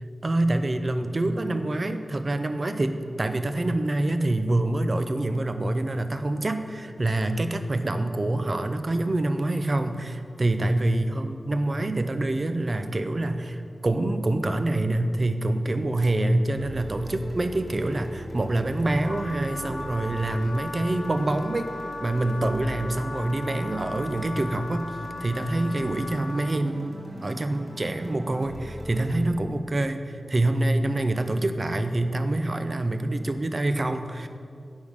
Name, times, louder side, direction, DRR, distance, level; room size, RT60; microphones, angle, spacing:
voice 1, 0.2-21.7 22.0-34.3, right 2 dB, 50° right, 9 dB, 0.5 m, -26 dB
sound 1, 16.5-29.3, equal, 35° right, 1.8 m, -40 dB
Wind instrument woodwind instrument, 19.0-26.6, left 3 dB, 55° left, 0.5 m, -38 dB
9.7 x 3.7 x 6.4 m, 2.4 s
cardioid pair, 40°, 0 cm